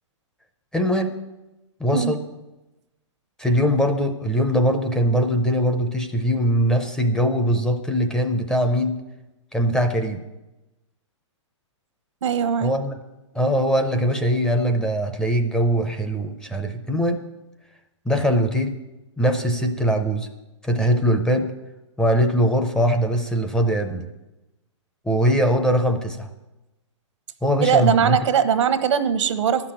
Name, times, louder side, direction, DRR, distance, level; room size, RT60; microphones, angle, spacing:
voice 1, 0.7-1.1 1.8-2.2 3.4-9.0 9.5-10.2 12.6-13.0 13.3-17.2 18.1-18.8 19.2-20.3 20.6-21.5 22.0-24.1 25.1-26.3 27.4-28.2, equal, 5° left, 5 dB, 0.6 m, -21 dB
voice 2, 12.2-12.7 27.6-29.7, right 8 dB, 75° right, 12 dB, 1.0 m, -20 dB
11.0 x 6.0 x 8.9 m, 1.0 s
hypercardioid pair, 145°, 16 cm